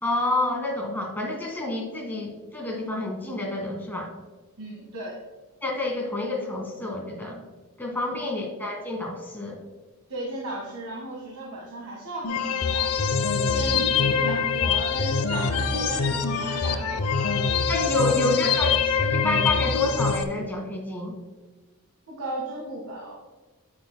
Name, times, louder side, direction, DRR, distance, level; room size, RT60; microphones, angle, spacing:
voice 1, 0.0-4.1 5.6-7.4 7.8-9.6 17.7-21.1, left 2 dB, 10° left, 1 dB, 1.5 m, -28 dB
voice 2, 4.6-5.2 10.1-17.3 17.8-18.3 22.1-23.2, right 1 dB, 75° right, -3 dB, 1.7 m, -35 dB
sound 1, 12.2-20.2, left 6 dB, 75° left, 0.6 m, -24 dB
9.4 x 8.8 x 2.2 m, 1.2 s
head